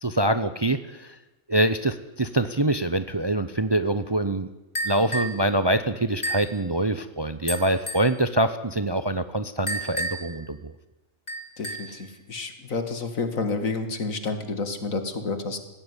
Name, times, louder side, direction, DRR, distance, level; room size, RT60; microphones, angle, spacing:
voice 1, 0.0-1.2 1.5-4.5 4.8-10.7, right 1 dB, 25° right, 11 dB, 0.6 m, -25 dB
sound 1, 4.8-5.4 6.2-6.5 7.5-8.1 9.7-10.4 11.3-12.0, right 1 dB, 30° left, 3.4 m, -31 dB
voice 2, 11.6-15.6, left 3 dB, 75° left, 8 dB, 2.5 m, -30 dB
19.0 x 16.0 x 9.8 m, 1.0 s
omnidirectional pair, 1.4 m